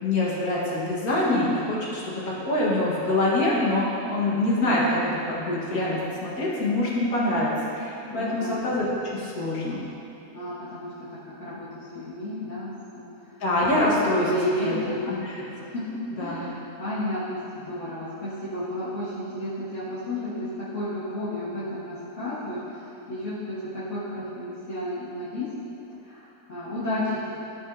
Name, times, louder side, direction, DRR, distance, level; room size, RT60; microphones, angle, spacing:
voice 1, 0.0-8.9 9.1-9.8 11.5-11.6 13.4-14.3 14.6-14.8 15.1-15.7 16.1-16.4, left 1 dB, 85° left, -6 dB, 2.0 m, -25 dB
voice 2, 8.1-8.6 10.3-13.0 14.2-15.1 15.7-15.8 16.2-20.5 20.7-25.5 26.1-27.3, left 1 dB, 55° left, -12 dB, 1.7 m, -32 dB
13.5 x 5.3 x 2.6 m, 2.9 s
omnidirectional pair, 1.5 m